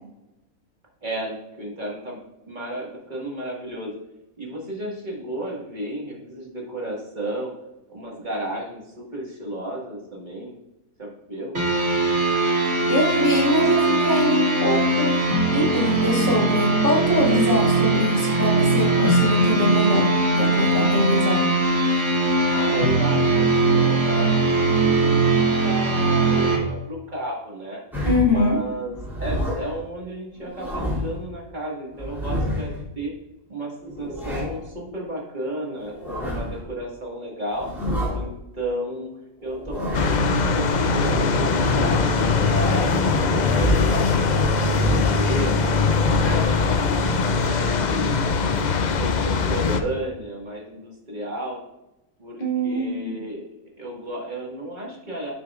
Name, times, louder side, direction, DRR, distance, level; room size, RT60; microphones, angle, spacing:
voice 1, 1.0-2.2 2.5-3.9 4.4-7.5 7.9-10.6 11.0-11.6 22.5-27.8 28.2-33.1 33.5-37.7 38.1-39.1 39.4-44.7 45.1-46.8 47.3-48.3 48.9-51.6 52.2-53.4 53.8-55.3, right 1 dB, 30° right, -2 dB, 1.8 m, -33 dB
sound 1, 11.5-26.6, right 2 dB, 55° right, 2.2 m, -20 dB
voice 2, 12.9-15.1 15.5-21.5 28.0-28.6 52.4-53.2, left 1 dB, 35° left, -4 dB, 2.2 m, -23 dB
sound 2, 27.9-28.4 28.9-29.8 30.4-31.2 31.9-32.8 33.8-34.7 35.8-36.6 37.5-38.3 39.4-40.3 41.3-42.2 43.2-44.1 44.7-45.3 45.8-46.6, equal, ahead, 2.6 m, -28 dB
sound 3, 39.9-49.8, left 4 dB, 80° left, 0.4 m, -21 dB
11.5 x 6.2 x 2.4 m, 0.93 s
omnidirectional pair, 1.5 m